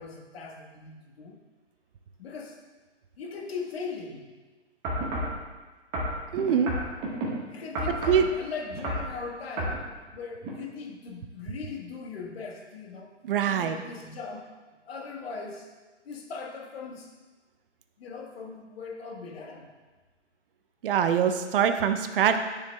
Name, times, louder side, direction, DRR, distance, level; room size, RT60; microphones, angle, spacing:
voice 1, 0.0-1.4 2.2-2.6 3.2-4.3 7.5-9.8 10.1-13.1 13.5-14.5 14.8-15.7 16.0-17.1 18.0-19.7, left 5 dB, 55° left, 0 dB, 1.5 m, -39 dB
sound 1, 4.8-5.4 5.9-7.3 7.7-8.3 8.7-9.1 9.6-9.8 10.4-10.5, right 1 dB, 20° right, 1.4 m, -30 dB
voice 2, 6.3-6.7 8.1-8.2 13.2-13.8 20.8-22.4, right 8 dB, 50° right, 8 dB, 0.6 m, -23 dB
9.7 x 6.9 x 2.3 m, 1.3 s
hypercardioid pair, 140°, 36 cm